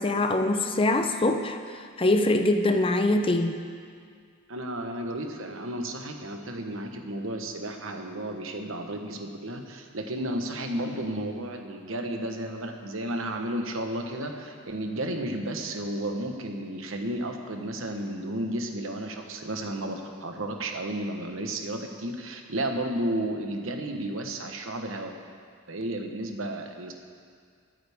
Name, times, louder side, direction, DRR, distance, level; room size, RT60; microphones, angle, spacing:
voice 1, 0.0-1.6 2.0-3.6, left 2 dB, 25° left, 6 dB, 0.6 m, -23 dB
voice 2, 4.5-25.1 25.7-26.9, right 1 dB, 70° right, 4 dB, 1.2 m, -33 dB
21.5 x 9.0 x 3.6 m, 2.1 s
head